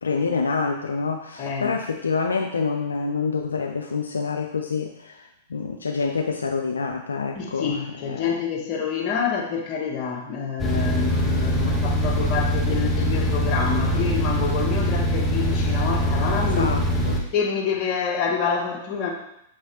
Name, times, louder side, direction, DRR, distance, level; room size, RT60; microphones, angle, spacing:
voice 1, 0.0-7.8 8.0-8.3 16.6-17.2, left 4 dB, 85° left, 3 dB, 0.3 m, -27 dB
voice 2, 1.4-1.7 7.3-16.7 17.3-19.1, left 6 dB, 40° left, 0 dB, 1.0 m, -27 dB
sound 1, 10.6-17.2, equal, 5° left, 0.7 m, -23 dB
5.8 x 3.0 x 2.8 m, 0.79 s
hypercardioid pair, 105°, 0 cm